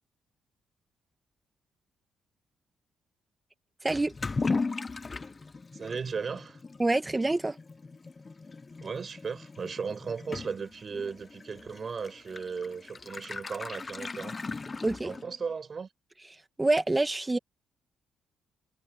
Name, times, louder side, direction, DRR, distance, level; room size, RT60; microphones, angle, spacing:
voice 1, 3.8-4.1 6.8-7.6 14.8-15.1 16.6-17.4, right 2 dB, 15° right, 1.7 m, -26 dB
Toilet flush / Liquid, 3.9-15.5, left 4 dB, 30° left, 0.8 m, -38 dB
voice 2, 5.7-6.6 8.8-14.4 15.0-15.9, right 5 dB, 40° right, 5.1 m, -36 dB
cardioid pair, 90°, 0 cm